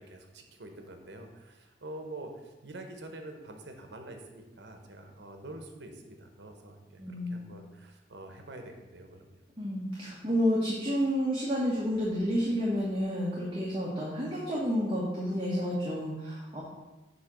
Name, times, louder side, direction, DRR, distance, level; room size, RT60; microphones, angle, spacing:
voice 1, 0.0-9.4, right 1 dB, 75° right, 4 dB, 0.9 m, -46 dB
voice 2, 7.0-7.4 9.6-16.6, equal, 25° right, -6 dB, 1.1 m, -30 dB
8.1 x 2.9 x 6.1 m, 1.1 s
head